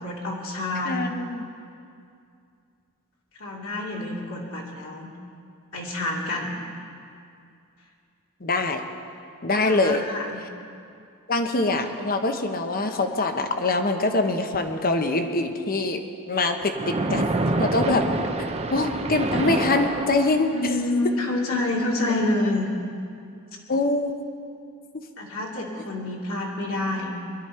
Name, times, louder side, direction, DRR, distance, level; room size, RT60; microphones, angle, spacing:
voice 1, 0.0-1.0 3.4-5.1 5.7-6.6 9.6-10.4 20.5-22.7 25.2-27.1, left 2 dB, 65° left, -3 dB, 2.4 m, -28 dB
voice 2, 0.9-1.5 8.4-8.8 9.4-10.0 11.3-16.0 16.3-17.3 17.6-18.0 18.7-20.7 23.7-24.1, left 2 dB, 40° left, 6 dB, 1.0 m, -24 dB
Splash splatter, 16.7-20.8, right 2 dB, 30° right, 0.7 m, -27 dB
22.5 x 12.0 x 4.4 m, 2.4 s
head